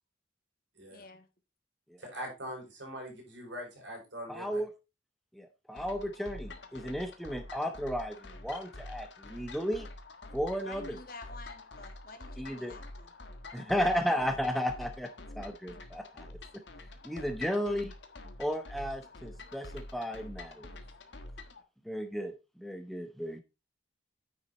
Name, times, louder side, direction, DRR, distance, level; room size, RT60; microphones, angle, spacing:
voice 1, 0.9-1.2 10.6-13.1 13.6-14.1 15.4-15.5, left 3 dB, 50° left, 1.6 m, -49 dB
voice 2, 2.0-4.6, equal, 70° right, 5.6 m, -42 dB
voice 3, 4.3-4.7 5.4-9.9 10.3-11.0 12.4-12.7 13.5-15.1 15.4-16.3 17.0-17.9 18.4-20.7 21.9-22.3 22.6-23.4, equal, ahead, 0.7 m, -34 dB
sound 1, 5.8-21.6, left 2 dB, 70° left, 1.4 m, -47 dB
9.5 x 6.1 x 4.2 m
head